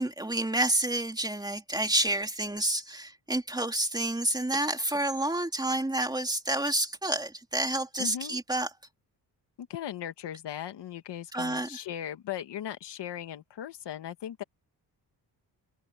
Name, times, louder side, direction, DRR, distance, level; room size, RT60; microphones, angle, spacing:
voice 1, 0.0-8.7 11.3-11.8, right 1 dB, 10° right, 3.0 m, -29 dB
voice 2, 8.0-8.4 9.6-14.4, left 10 dB, 80° left, 1.8 m, -38 dB
wide cardioid pair, 140°, 41 cm